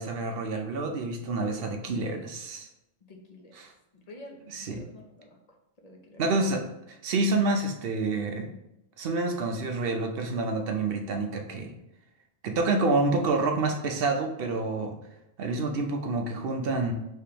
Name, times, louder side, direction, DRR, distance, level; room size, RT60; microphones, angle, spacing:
voice 1, 0.0-2.7 4.5-4.8 6.2-8.5 9.0-11.7 12.4-15.0 15.4-16.9, right 3 dB, 60° right, 4 dB, 0.6 m, -28 dB
voice 2, 3.0-5.4 5.8-6.2, left 1 dB, 45° left, 1 dB, 0.5 m, -49 dB
5.1 x 3.4 x 2.8 m, 0.87 s
omnidirectional pair, 1.5 m